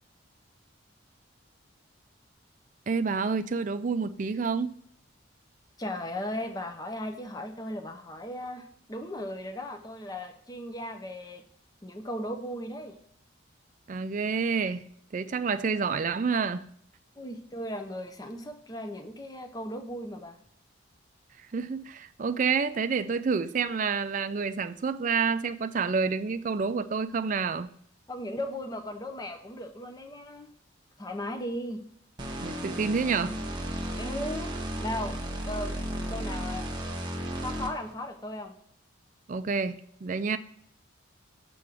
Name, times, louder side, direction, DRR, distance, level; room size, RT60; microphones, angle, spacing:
voice 1, 2.9-4.7 13.9-14.8 15.1-16.7 21.5-27.7 32.4-33.4 39.3-40.4, right 5 dB, 40° right, 0.4 m, -28 dB
voice 2, 5.8-11.4 11.8-13.0 17.2-20.4 28.1-30.5 31.0-31.8 34.0-34.5 34.8-36.8 37.4-38.5, left 1 dB, 20° left, 0.5 m, -37 dB
sound 1, 32.2-37.9, right 1 dB, 20° right, 0.8 m, -34 dB
7.6 x 3.6 x 6.0 m
head